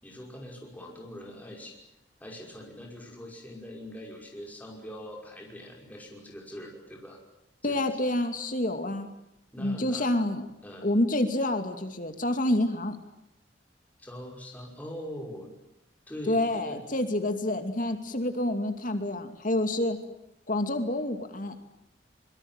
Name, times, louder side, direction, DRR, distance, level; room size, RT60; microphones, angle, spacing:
voice 1, 0.0-1.8 2.2-7.2 7.6-7.8 9.5-10.1 10.6-10.9 14.0-15.5 16.1-16.8, equal, 10° left, 0 dB, 5.6 m, -42 dB
voice 2, 7.6-9.1 9.6-10.4 10.8-13.0 16.3-20.0 20.5-21.6, left 1 dB, 45° left, 7 dB, 2.6 m, -28 dB
25.0 x 23.5 x 9.0 m, 0.80 s
head